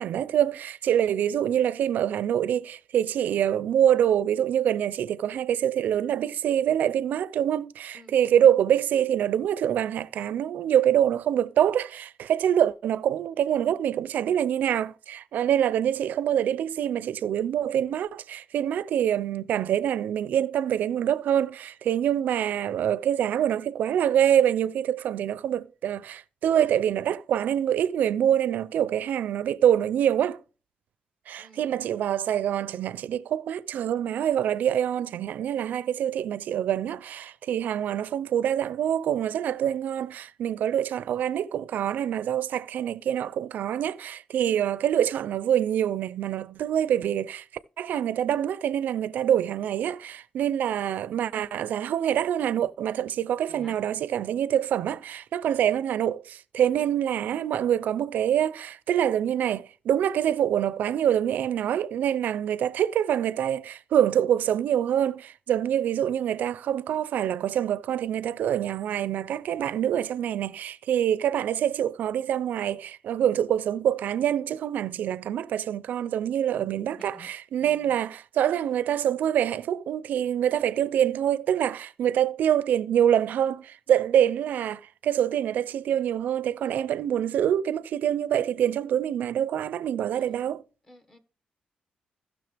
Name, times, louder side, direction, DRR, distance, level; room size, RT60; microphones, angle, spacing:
voice 1, 0.0-30.4 31.3-47.4 47.8-90.6, right 10 dB, 80° right, 0.6 m, -25 dB
voice 2, 0.9-1.2 7.9-8.2 31.4-31.8 53.5-53.8 76.7-77.3 77.6-78.0 78.4-78.8 90.1-90.6 90.9-91.2, left 1 dB, 15° left, 1.6 m, -52 dB
15.5 x 6.4 x 3.4 m
cardioid pair, 130°, 3 cm